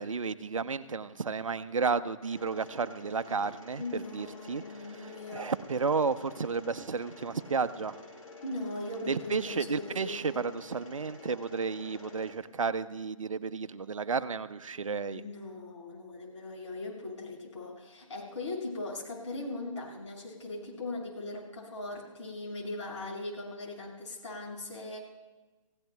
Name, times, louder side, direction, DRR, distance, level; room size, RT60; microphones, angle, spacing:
voice 1, 0.0-4.6 4.9-8.0 9.1-15.2, right 5 dB, 65° right, 12 dB, 0.8 m, -32 dB
Mechanisms, 2.2-12.3, left 3 dB, 85° left, 5.1 m, -50 dB
voice 2, 3.8-5.5 8.4-10.4 15.1-25.0, left 2 dB, 60° left, -3 dB, 6.6 m, -39 dB
28.5 x 16.5 x 2.3 m, 1.2 s
figure-of-eight pair, 135°, 18 cm